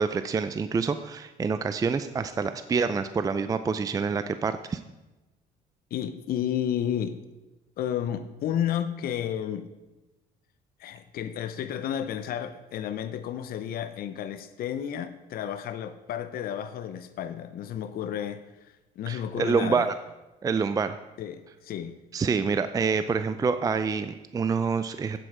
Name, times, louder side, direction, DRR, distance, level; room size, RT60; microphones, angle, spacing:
voice 1, 0.0-4.8 19.1-19.9 20.4-21.0 22.1-25.2, right 5 dB, 20° right, 11 dB, 0.4 m, -27 dB
voice 2, 5.9-7.2 7.8-9.7 10.8-18.4 19.0-19.8 21.2-21.9, left 9 dB, 60° left, 10 dB, 0.7 m, -32 dB
8.7 x 7.7 x 4.9 m, 1.1 s
cardioid pair, 110°, 17 cm